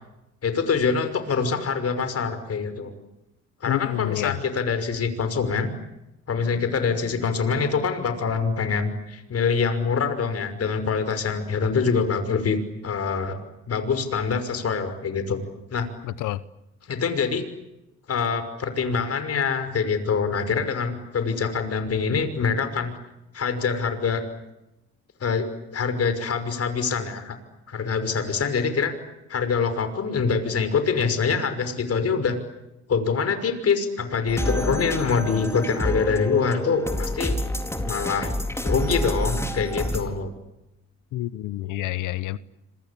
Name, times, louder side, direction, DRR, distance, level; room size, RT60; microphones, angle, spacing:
voice 1, 0.4-2.9 3.6-5.7 6.3-12.6 12.8-13.4 13.7-15.4 15.7-15.9 16.9-17.4 18.1-22.9 23.3-24.2 25.2-25.5 25.7-27.4 27.7-28.9 29.3-32.4 32.9-37.4 37.8-38.3 38.6-40.3, left 5 dB, 50° left, 5.9 m, -25 dB
voice 2, 3.7-4.4 16.0-16.4 41.1-42.4, left 15 dB, 90° left, 1.0 m, -28 dB
sound 1, 34.3-40.0, left 1 dB, 10° left, 4.3 m, -28 dB
27.0 x 25.5 x 8.7 m
cardioid pair, 90°, 30 cm